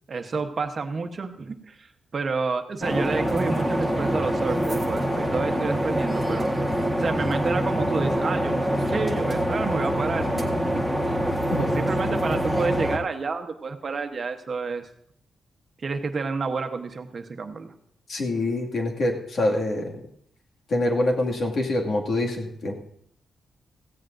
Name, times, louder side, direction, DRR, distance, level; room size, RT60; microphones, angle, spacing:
voice 1, 0.1-6.5 7.0-10.6 11.7-14.9 15.8-17.7, right 4 dB, 40° right, 6 dB, 1.0 m, -29 dB
sound 1, 2.8-13.0, equal, 10° left, 1.6 m, -25 dB
voice 2, 18.1-19.9 20.7-22.7, left 1 dB, 55° left, 1 dB, 2.2 m, -25 dB
17.0 x 15.5 x 2.7 m, 0.69 s
wide cardioid pair, 140°, 0 cm